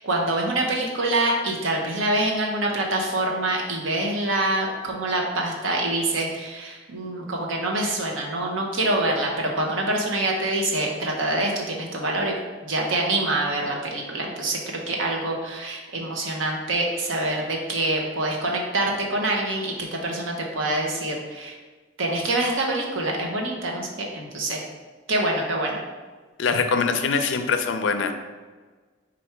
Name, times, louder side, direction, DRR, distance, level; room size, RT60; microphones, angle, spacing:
voice 1, 0.0-12.3 12.6-21.5 22.0-24.6 25.1-25.8, right 2 dB, 85° right, 0 dB, 0.8 m, -25 dB
voice 2, 26.4-28.1, left 5 dB, 75° left, 7 dB, 0.4 m, -23 dB
4.5 x 2.5 x 4.4 m, 1.4 s
head